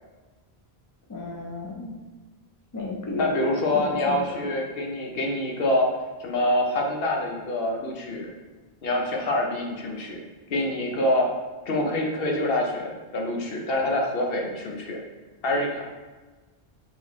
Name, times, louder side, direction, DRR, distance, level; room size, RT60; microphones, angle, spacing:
voice 1, 1.1-2.0 2.7-3.5 3.7-4.2, left 3 dB, 30° left, 1 dB, 0.3 m, -33 dB
voice 2, 3.2-5.9 6.2-8.3 8.8-10.2 10.5-11.3 11.7-15.0 15.4-15.8, left 1 dB, 70° left, 1 dB, 0.9 m, -26 dB
3.7 x 3.5 x 3.0 m, 1.3 s
omnidirectional pair, 1.0 m